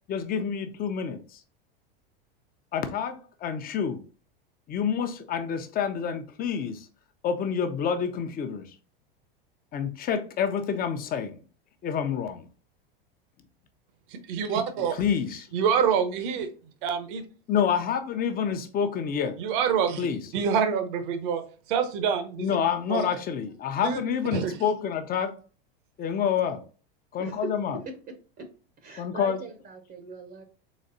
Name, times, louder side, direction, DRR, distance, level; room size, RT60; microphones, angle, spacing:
voice 1, 0.1-1.4 2.7-4.0 4.7-6.9 7.2-8.7 9.7-11.4 11.8-12.5 15.0-15.5 17.5-19.3 20.0-20.2 22.4-25.4 26.0-26.6 27.1-27.8 29.0-29.4, left 7 dB, 30° left, 0.7 m, -28 dB
voice 2, 14.1-15.0 15.5-16.5 16.8-17.2 19.4-20.1 20.3-21.4 21.7-22.6 22.9-23.1 23.8-24.0 24.3-24.5, right 7 dB, 60° right, 0.9 m, -26 dB
voice 3, 27.2-27.5 27.8-27.9 28.4-28.5 28.8-30.4, right 3 dB, 30° right, 0.8 m, -40 dB
4.2 x 3.1 x 3.9 m
supercardioid pair, 115°, 29 cm